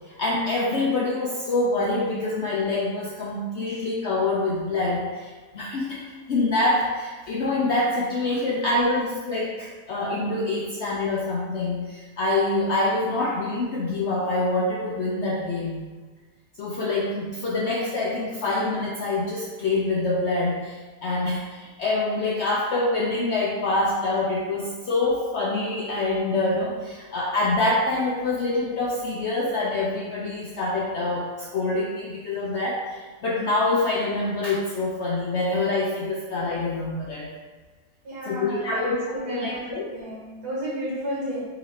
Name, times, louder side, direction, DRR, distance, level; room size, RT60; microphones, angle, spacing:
voice 1, 0.1-15.8 16.6-37.3 38.2-39.9, left 2 dB, 75° left, -3 dB, 0.6 m, -26 dB
voice 2, 38.0-41.4, equal, 85° right, -7 dB, 2.3 m, -33 dB
4.0 x 2.9 x 4.1 m, 1.3 s
omnidirectional pair, 1.7 m